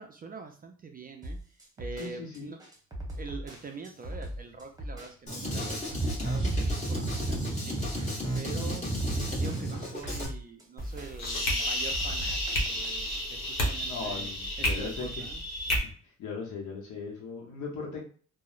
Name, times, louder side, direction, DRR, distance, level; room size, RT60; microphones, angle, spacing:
voice 1, 0.0-2.6 3.2-7.9 8.3-8.9 9.3-12.4 12.7-14.3 14.6-15.4, right 4 dB, 30° right, 4 dB, 0.4 m, -44 dB
sound 1, 1.2-13.2, equal, 15° right, 0.9 m, -40 dB
voice 2, 2.0-2.5 13.8-15.1 15.8-15.9 16.2-18.1, left 5 dB, 85° left, -1 dB, 0.7 m, -38 dB
Drum kit, 5.3-10.3, right 1 dB, 25° left, 1.1 m, -31 dB
sound 2, 10.8-15.8, equal, 65° left, 1.0 m, -31 dB
2.8 x 2.0 x 2.4 m, 0.43 s
cardioid pair, 90°, 30 cm